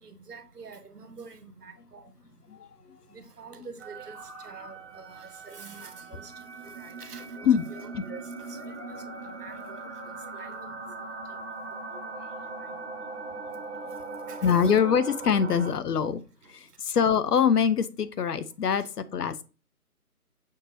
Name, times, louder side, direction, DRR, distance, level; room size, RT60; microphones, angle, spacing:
voice 1, 0.0-2.0 3.1-4.2 4.4-6.3 6.6-8.2 8.5-9.8 10.3-10.5 11.0-11.1 14.3-14.8 18.8-18.9, right 4 dB, 85° right, 1.1 m, -46 dB
sound 1, 3.8-15.7, right 3 dB, 50° right, 0.8 m, -40 dB
voice 2, 8.8-9.3 9.7-10.1 12.1-12.3 13.8-13.9 14.4-16.2 16.5-19.4, left 7 dB, 85° left, 0.6 m, -25 dB
6.4 x 3.2 x 2.6 m
figure-of-eight pair, 165°, 45 cm